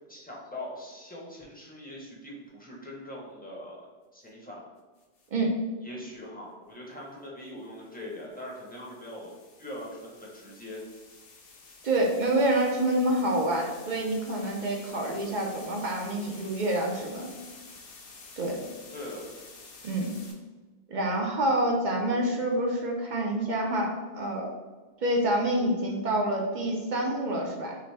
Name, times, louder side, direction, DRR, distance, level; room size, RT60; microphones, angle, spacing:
voice 1, 0.1-3.8 4.1-4.6 5.8-9.3 9.6-10.8 18.9-19.3, left 1 dB, 10° left, -4 dB, 0.7 m, -42 dB
sound 1, 5.0-5.3 7.4-20.3, left 4 dB, 60° left, 0.8 m, -50 dB
voice 2, 11.8-17.3 18.4-18.6 19.8-20.1 20.9-24.5 25.0-27.8, right 1 dB, 50° right, 1 dB, 0.6 m, -27 dB
5.7 x 2.0 x 3.3 m, 1.3 s
omnidirectional pair, 1.2 m